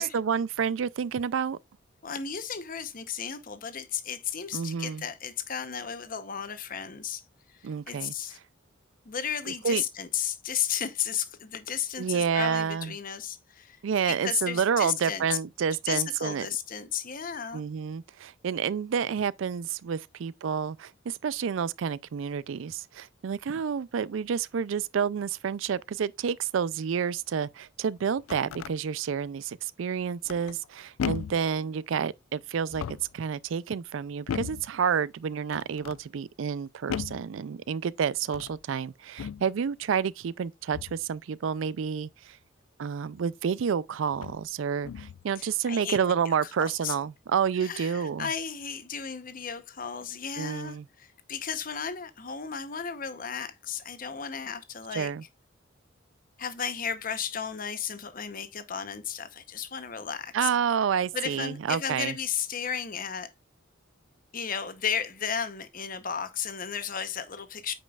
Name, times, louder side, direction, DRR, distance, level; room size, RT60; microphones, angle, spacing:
voice 1, 0.0-1.6 4.5-5.0 7.6-8.1 9.5-9.8 12.0-12.9 13.8-16.5 17.5-32.8 33.1-42.4 42.8-48.3 50.4-50.8 54.9-55.2 60.3-62.1, right 7 dB, 70° right, 0.4 m, -29 dB
voice 2, 2.0-7.2 7.5-8.4 9.0-13.8 14.1-15.4 15.9-17.6 45.4-46.0 46.4-47.0 47.6-55.1 56.4-60.5 61.1-63.3 64.3-67.7, left 7 dB, 45° left, 0.8 m, -34 dB
sound 1, 28.0-28.8 30.3-30.7 31.0-31.5 32.6-33.2 34.3-34.7 35.5-36.0 36.9-37.3 38.2-38.6 39.2-39.5 40.7-41.0 43.2-43.3 44.1-44.5 44.8-45.2, left 7 dB, 90° left, 0.3 m, -36 dB
8.7 x 5.2 x 2.4 m
head